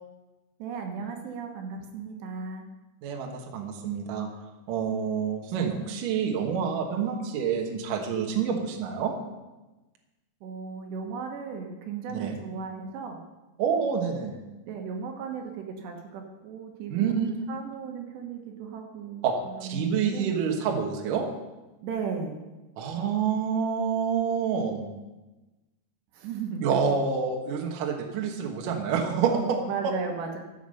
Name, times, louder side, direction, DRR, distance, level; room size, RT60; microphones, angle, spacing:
voice 1, 0.6-2.6 10.4-13.2 14.7-20.3 21.8-22.4 26.1-26.7 29.6-30.4, right 5 dB, 80° right, 3 dB, 3.4 m, -36 dB
voice 2, 3.0-4.3 4.7-9.1 12.1-12.4 13.6-14.4 16.9-17.4 19.2-19.4 19.6-21.2 22.8-24.9 26.6-29.7, right 6 dB, 65° right, 2 dB, 2.5 m, -27 dB
13.5 x 7.1 x 6.6 m, 1.1 s
omnidirectional pair, 5.0 m